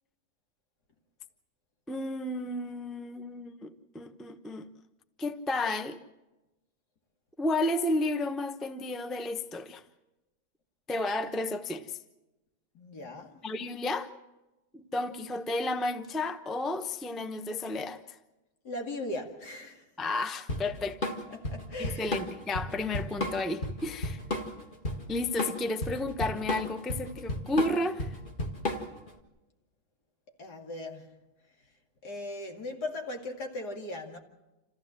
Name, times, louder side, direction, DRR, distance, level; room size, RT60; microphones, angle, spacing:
voice 1, 1.9-4.7 5.2-6.0 7.4-9.8 10.9-12.0 13.4-14.1 14.7-18.2 20.0-21.1 21.8-24.2 25.1-28.1, left 2 dB, ahead, 0.5 m, -32 dB
voice 2, 12.7-13.4 18.6-19.8 21.3-22.1 30.4-31.1 32.0-34.2, left 2 dB, 75° left, 2.8 m, -38 dB
Drum kit / Drum, 20.5-29.1, left 1 dB, 30° left, 1.9 m, -33 dB
28.0 x 15.0 x 7.5 m
omnidirectional pair, 1.7 m